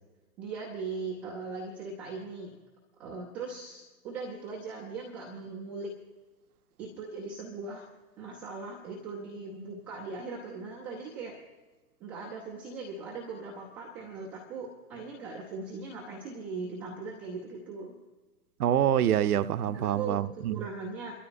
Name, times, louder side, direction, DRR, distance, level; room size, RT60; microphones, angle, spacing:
voice 1, 0.4-2.6 3.0-5.9 6.8-7.9 8.2-11.4 12.0-17.9 19.7-21.1, right 4 dB, 5° right, 0.4 m, -39 dB
voice 2, 18.6-20.7, right 10 dB, 65° right, 0.7 m, -26 dB
28.0 x 12.5 x 2.5 m
hypercardioid pair, 130°, 49 cm